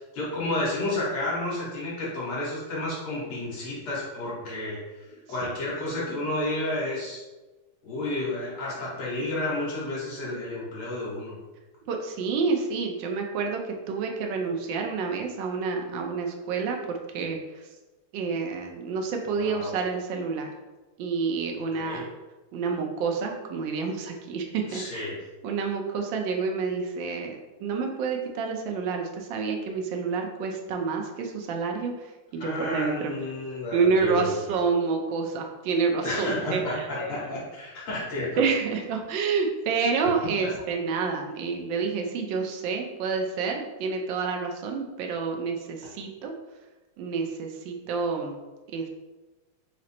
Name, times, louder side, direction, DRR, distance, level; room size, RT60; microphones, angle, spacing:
voice 1, 0.1-4.8 5.3-7.2 7.8-11.4 19.4-19.8 21.8-22.0 24.7-25.2 32.4-34.6 36.0-38.4 40.4-40.5, left 1 dB, 80° left, -6 dB, 2.5 m, -31 dB
voice 2, 11.9-17.4 18.1-20.5 21.0-22.0 22.5-25.1 25.4-32.1 32.3-33.1 33.7-36.9 38.4-46.3 47.0-48.4 48.7-48.9, right 5 dB, 70° right, 2 dB, 1.2 m, -28 dB
5.0 x 2.0 x 4.2 m, 1.1 s
omnidirectional pair, 2.4 m